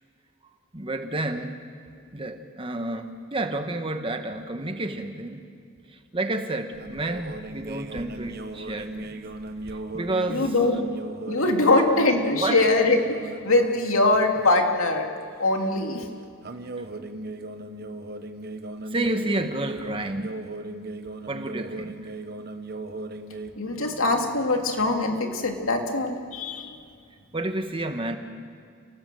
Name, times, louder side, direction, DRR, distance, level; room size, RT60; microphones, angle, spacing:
voice 1, 0.7-1.5 2.1-5.4 5.9-9.3 9.7-10.5 11.3-11.4 11.8-11.9 12.3-12.6 16.8-16.9 18.9-20.4 21.3-22.1 27.3-28.2, right 2 dB, 25° right, 7 dB, 1.4 m, -30 dB
sound 1, 6.7-13.8 14.1-14.5 16.4-23.5, right 2 dB, 50° right, 1.2 m, -37 dB
voice 2, 10.3-10.8 11.3-15.1 15.4-16.1 23.6-26.8, left 2 dB, 85° left, 3 dB, 2.8 m, -22 dB
30.0 x 18.5 x 7.7 m, 2.2 s
head